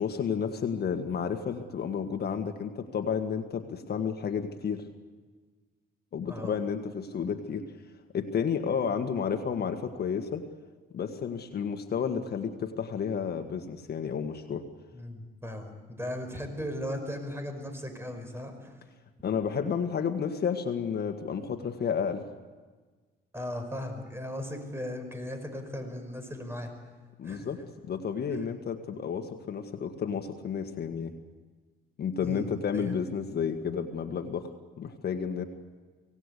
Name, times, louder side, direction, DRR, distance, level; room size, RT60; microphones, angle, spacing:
voice 1, 0.0-4.8 6.1-7.7 8.1-10.4 10.9-14.7 19.2-22.3 27.2-31.1 32.0-34.5 34.8-35.4, left 7 dB, 55° left, 6 dB, 1.6 m, -31 dB
voice 2, 6.3-6.6 14.9-15.7 16.0-18.7 23.3-26.7 27.2-27.5 28.3-28.4 32.2-32.5 32.7-33.0, left 1 dB, 10° right, 7 dB, 5.4 m, -37 dB
25.5 x 18.0 x 8.3 m, 1.4 s
cardioid pair, 90°, 20 cm